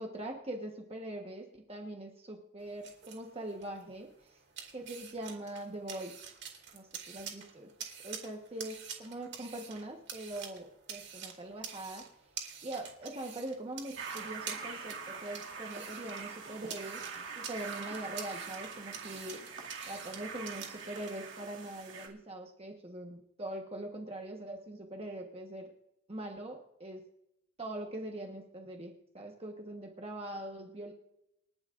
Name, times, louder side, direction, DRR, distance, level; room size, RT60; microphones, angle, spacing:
voice 1, 0.0-4.4 4.7-6.1 6.7-7.7 8.0-12.0 12.6-17.0 17.4-19.4 19.9-25.7 26.1-27.0 27.6-30.9, right 1 dB, 30° right, 1 dB, 1.3 m, -42 dB
sound 1, 2.6-21.1, right 7 dB, 60° right, 2.4 m, -48 dB
sound 2, 14.0-22.1, right 5 dB, 75° right, 2.4 m, -44 dB
28.5 x 11.5 x 2.6 m, 0.83 s
head